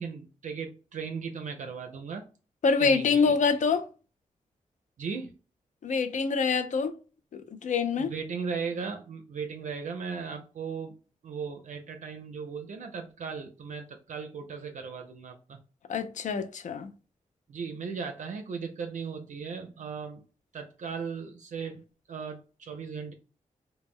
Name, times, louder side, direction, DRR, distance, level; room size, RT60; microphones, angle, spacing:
voice 1, 0.0-2.2 2.8-3.4 5.0-5.3 8.0-10.9 11.2-15.6 17.5-20.2 20.5-23.1, right 5 dB, 65° right, 0.4 m, -37 dB
voice 2, 2.6-3.9 5.8-6.9 7.6-8.1 15.9-16.9, left 5 dB, 65° left, 0.4 m, -25 dB
2.1 x 2.0 x 3.4 m
cardioid pair, 55°, 14 cm